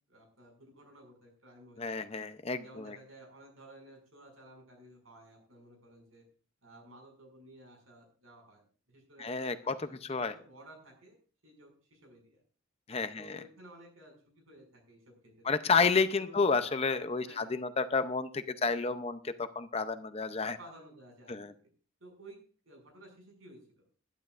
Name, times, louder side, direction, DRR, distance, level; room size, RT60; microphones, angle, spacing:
voice 1, 0.1-1.9 2.6-6.2 6.6-8.6 8.9-9.3 9.6-11.2 11.4-12.4 13.1-15.5 16.1-16.5 17.2-17.5 20.6-21.5 22.0-22.4 22.6-23.9, right 1 dB, 85° right, 2 dB, 6.0 m, -55 dB
voice 2, 1.8-3.0 9.2-10.3 12.9-13.4 15.4-20.6 21.3-21.5, left 4 dB, 30° left, 10 dB, 0.6 m, -31 dB
20.0 x 11.0 x 2.5 m, 0.39 s
head